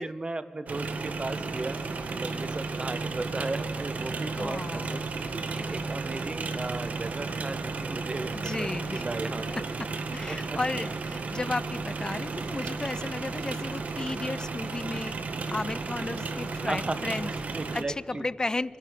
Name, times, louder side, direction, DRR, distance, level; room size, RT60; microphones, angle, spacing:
voice 1, 0.0-1.8 2.1-5.0 5.3-8.3 8.6-9.5 10.3-10.6 16.7-17.0 17.3-18.3, right 2 dB, 40° right, 12 dB, 0.8 m, -36 dB
sound 1, 0.7-17.8, right 4 dB, 80° right, 0.9 m, -33 dB
voice 2, 4.4-5.0 8.3-9.0 9.5-9.9 10.1-15.2 15.5-17.3 17.7-18.8, left 2 dB, 30° left, 18 dB, 0.3 m, -34 dB
25.0 x 11.0 x 4.9 m, 2.6 s
cardioid pair, 65°, 3 cm